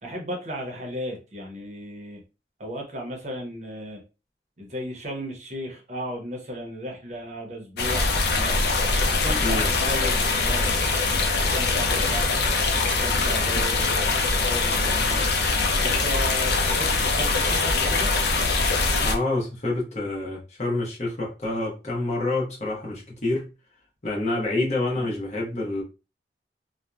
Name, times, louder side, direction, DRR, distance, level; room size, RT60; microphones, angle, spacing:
voice 1, 0.0-2.2 2.6-4.0 4.6-8.6 9.0-10.7 11.3-12.4 12.8-15.3 15.8-18.2 24.9-25.1, equal, 40° right, 0.7 m, -35 dB
sound 1, 7.8-19.1, left 3 dB, 65° left, 0.5 m, -23 dB
voice 2, 19.0-23.5 24.0-25.8, left 2 dB, 40° left, 0.8 m, -27 dB
2.8 x 2.0 x 2.3 m
head